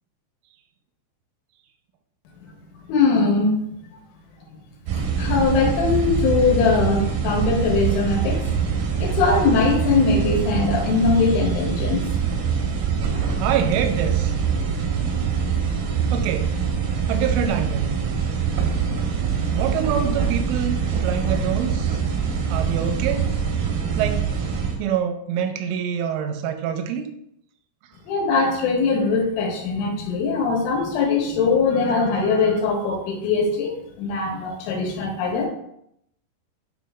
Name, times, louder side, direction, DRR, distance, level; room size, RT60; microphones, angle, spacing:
voice 1, 2.9-3.5 4.5-4.6 5.2-8.4 9.0-12.0 28.1-35.5, left 4 dB, 80° left, 0 dB, 3.7 m, -21 dB
sound 1, 4.9-24.8, right 6 dB, 70° right, 2.5 m, -24 dB
voice 2, 13.4-14.4 16.1-16.6 17.1-17.9 19.5-22.0 22.5-23.3 24.0-24.3 24.8-27.1, right 8 dB, 90° right, 6 dB, 3.3 m, -25 dB
8.8 x 3.1 x 3.6 m, 0.73 s
omnidirectional pair, 5.6 m